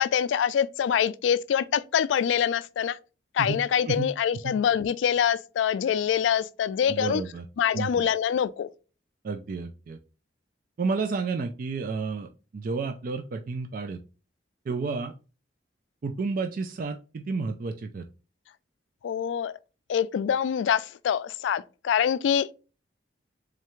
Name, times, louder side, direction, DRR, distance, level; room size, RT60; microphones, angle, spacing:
voice 1, 0.0-3.0 3.3-7.2 7.6-8.7 19.0-19.5 19.9-22.5, left 8 dB, 85° left, 0.3 m, -25 dB
voice 2, 6.9-7.4 7.7-7.9 9.2-10.0 10.8-14.0 14.7-15.1 16.0-18.0, right 4 dB, 50° right, 0.4 m, -31 dB
3.7 x 3.2 x 3.0 m
head